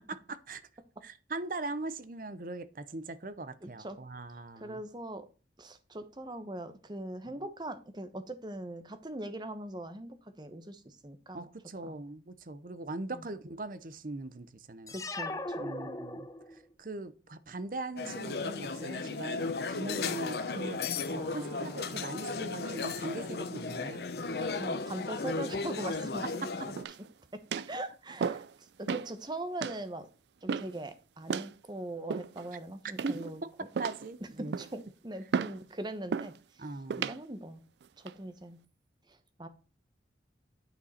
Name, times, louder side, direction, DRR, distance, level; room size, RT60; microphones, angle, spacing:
voice 1, 0.1-0.6 1.0-4.8 11.3-14.9 15.6-20.8 21.1-24.0 33.0-33.3 33.8-34.5 36.6-37.1, right 2 dB, 50° right, 0.7 m, -40 dB
voice 2, 3.6-4.0 4.3-5.3 5.6-11.5 11.8-11.9 13.1-13.3 14.9-15.9 21.1-22.1 24.5-26.5 27.7-30.1 30.4-33.4 34.6-36.7 37.0-37.6 38.0-38.6 39.1-39.5, right 1 dB, 25° right, 1.0 m, -41 dB
sound 1, 14.9-16.7, left 2 dB, 20° left, 0.6 m, -38 dB
sound 2, 18.0-26.8, left 4 dB, 65° left, 0.8 m, -35 dB
sound 3, 26.8-27.1 27.5-27.8 28.2-28.5 28.9-29.1 29.6-29.8 30.5-30.8 31.3-31.5 32.1-32.5 33.0-33.4 33.7-34.1 34.5-34.8 35.3-35.6 36.1-36.4 36.9-37.2 37.8-38.1, right 6 dB, 75° right, 0.4 m, -34 dB
9.6 x 5.6 x 4.2 m
head